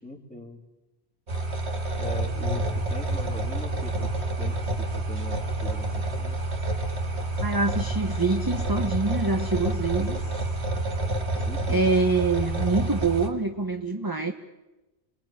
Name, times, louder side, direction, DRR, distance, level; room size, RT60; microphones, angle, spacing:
voice 1, 0.0-0.6 2.0-4.1 4.4-6.4 11.3-11.8, equal, 5° left, 1 dB, 3.5 m, -41 dB
sound 1, 1.3-13.3, right 2 dB, 90° right, 2.6 m, -28 dB
voice 2, 7.4-10.2 11.7-14.3, right 3 dB, 20° right, 5 dB, 1.2 m, -25 dB
28.5 x 21.5 x 9.0 m, 1.1 s
omnidirectional pair, 1.1 m